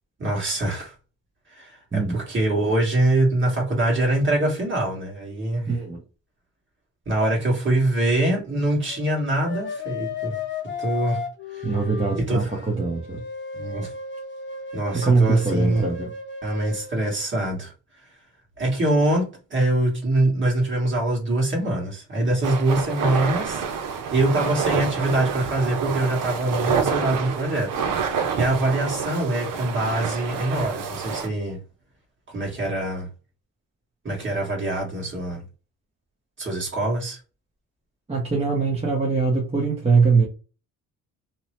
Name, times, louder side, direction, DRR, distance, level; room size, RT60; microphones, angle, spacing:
voice 1, 0.2-0.9 1.5-5.7 7.1-10.4 10.8-11.2 11.5-11.7 12.2-12.5 13.5-13.9 14.7-15.9 16.4-17.7 18.6-23.6 24.1-31.6 32.3-33.1 34.0-35.4 36.4-37.2, right 1 dB, 35° right, 1.4 m, -24 dB
voice 2, 5.7-6.0 11.6-13.2 14.9-16.1 38.1-40.3, right 4 dB, 20° right, 0.7 m, -22 dB
sound 1, 8.9-17.3, left 4 dB, 35° left, 0.8 m, -34 dB
sound 2, 22.4-31.3, right 6 dB, 70° right, 0.6 m, -27 dB
2.8 x 2.0 x 3.0 m
cardioid pair, 110°, 34 cm